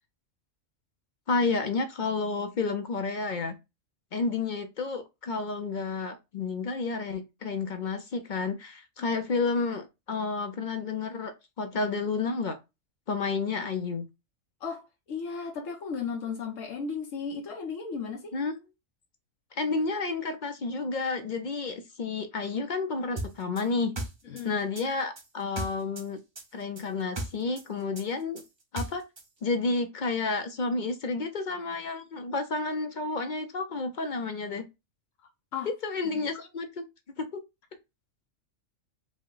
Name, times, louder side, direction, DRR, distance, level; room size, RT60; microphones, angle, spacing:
voice 1, 1.3-3.6 4.1-11.3 11.6-12.6 13.1-14.1 18.3-18.5 19.5-23.9 24.4-26.2 26.5-28.4 28.7-29.0 29.4-34.6 35.7-37.4, left 4 dB, 55° left, 0.6 m, -31 dB
voice 2, 14.6-18.3 24.2-24.6 35.5-35.7 36.1-36.2, left 5 dB, 90° left, 1.3 m, -35 dB
sound 1, 23.2-26.1 26.3-29.3, right 2 dB, 30° right, 0.6 m, -37 dB
5.0 x 2.1 x 3.7 m
omnidirectional pair, 1.3 m